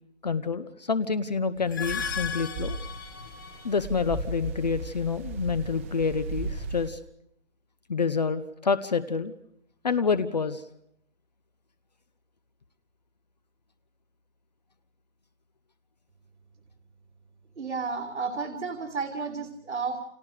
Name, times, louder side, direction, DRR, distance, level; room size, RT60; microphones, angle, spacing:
voice 1, 0.2-2.8 3.6-7.0 7.9-9.3 9.8-10.6, left 5 dB, 35° left, 13 dB, 0.9 m, -28 dB
sound 1, 1.6-3.8, left 6 dB, 15° left, 1.2 m, -36 dB
sound 2, 1.8-6.9, right 2 dB, 10° right, 1.2 m, -36 dB
voice 2, 17.6-20.0, right 4 dB, 80° right, 3 dB, 3.0 m, -32 dB
29.5 x 27.0 x 5.0 m, 0.74 s
hypercardioid pair, 175°, 35 cm